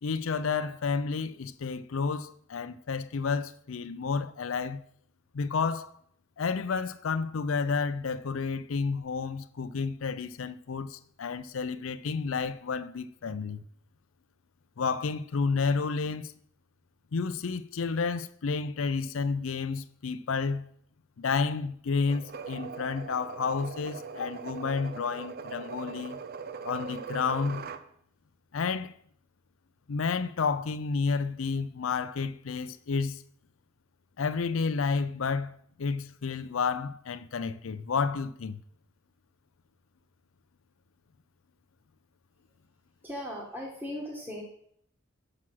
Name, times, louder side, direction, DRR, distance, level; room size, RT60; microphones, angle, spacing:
voice 1, 0.0-4.8 5.3-6.0 6.4-13.6 14.8-16.3 17.1-20.7 21.2-26.2 26.6-27.7 28.5-28.9 29.9-33.2 34.2-38.6, left 5 dB, 80° left, 0.5 m, -31 dB
sound 1, 22.1-27.8, right 5 dB, 50° right, 0.6 m, -40 dB
voice 2, 43.0-44.4, left 1 dB, 10° right, 1.4 m, -38 dB
7.5 x 6.0 x 6.1 m
head